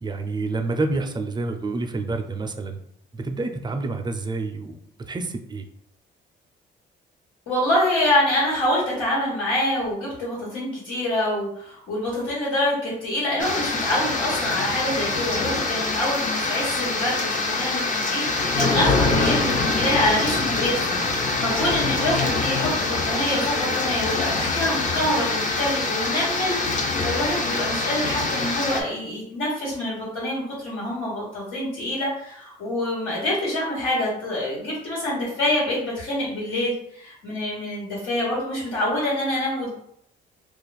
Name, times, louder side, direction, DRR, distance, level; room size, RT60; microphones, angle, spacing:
voice 1, 0.0-2.8 3.1-4.8 5.1-5.7, right 3 dB, 20° right, 5 dB, 0.4 m, -28 dB
voice 2, 7.5-39.7, left 1 dB, 85° left, -7 dB, 1.4 m, -26 dB
sound 1, 13.4-28.8, left 3 dB, 40° left, 0.6 m, -24 dB
2.4 x 2.4 x 4.0 m, 0.70 s
cardioid pair, 90°, 20 cm